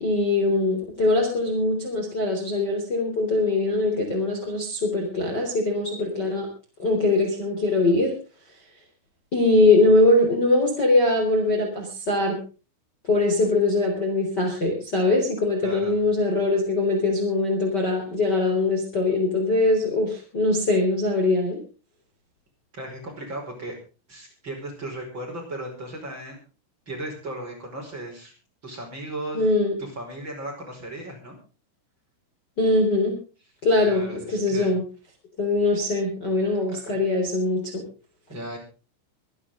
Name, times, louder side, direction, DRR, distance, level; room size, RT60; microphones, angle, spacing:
voice 1, 0.0-6.5 6.8-8.1 9.3-12.4 13.1-21.6 29.3-29.8 32.6-33.1 33.6-34.8 35.4-37.8, left 2 dB, 25° left, 1 dB, 3.7 m, -22 dB
voice 2, 15.6-16.0 22.7-23.8 24.1-26.4 26.9-28.3 28.6-29.5 29.8-31.4 33.9-34.7 36.8-37.0 38.3-38.6, right 1 dB, 25° right, 0 dB, 5.5 m, -36 dB
24.0 x 11.5 x 3.8 m, 0.35 s
omnidirectional pair, 5.8 m